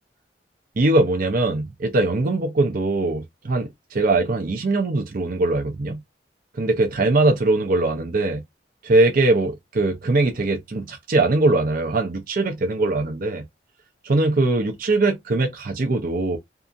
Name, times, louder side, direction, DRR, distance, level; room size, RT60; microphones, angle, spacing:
voice 1, 0.8-6.0 6.6-8.4 8.8-13.4 14.0-16.4, right 2 dB, 55° right, 0.6 m, -21 dB
2.7 x 2.5 x 2.3 m
head